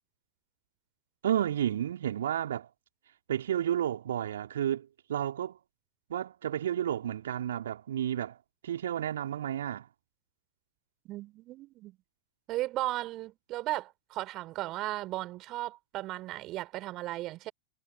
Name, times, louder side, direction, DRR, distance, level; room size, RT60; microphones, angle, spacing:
voice 1, 1.2-2.7 3.3-5.6 6.1-8.4 8.6-9.9, right 10 dB, 65° right, 4.3 m, -31 dB
voice 2, 11.0-12.0 12.5-17.5, right 17 dB, 40° right, 4.3 m, -36 dB
figure-of-eight pair, 85°, 0 cm